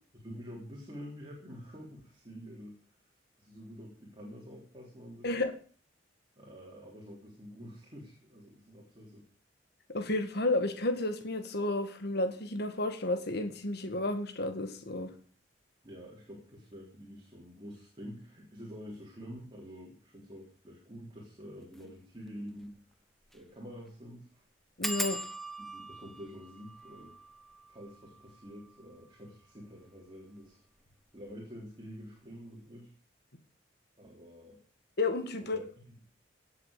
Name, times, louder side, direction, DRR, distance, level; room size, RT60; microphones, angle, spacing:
voice 1, 0.1-2.8 3.4-5.4 6.4-9.3 15.8-22.8 23.3-24.4 25.6-27.1 27.7-30.6 31.1-32.9 34.0-34.6 35.4-35.9, equal, 25° right, -2 dB, 3.9 m, -48 dB
voice 2, 9.9-15.1 24.8-25.2 35.0-35.6, left 2 dB, 60° left, 7 dB, 1.9 m, -31 dB
sound 1, 21.6-21.8 22.3-22.4 22.6-22.7 23.2-23.5 23.7-23.8 24.8-30.1 30.8-31.3 31.6-32.2, equal, ahead, 1.1 m, -42 dB
17.0 x 7.9 x 6.6 m, 0.42 s
head